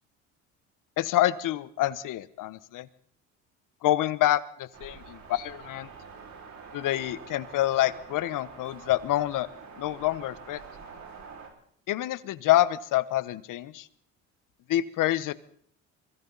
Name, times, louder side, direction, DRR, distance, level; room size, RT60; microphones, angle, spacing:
voice 1, 1.0-2.9 3.8-5.9 6.7-9.5 9.8-10.6 11.9-13.9 14.7-15.3, left 14 dB, 60° left, 16 dB, 1.2 m, -27 dB
sound 1, 4.7-11.5, right 5 dB, 50° right, 5.7 m, -46 dB
26.5 x 23.5 x 4.1 m, 0.63 s
supercardioid pair, 95°, 35 cm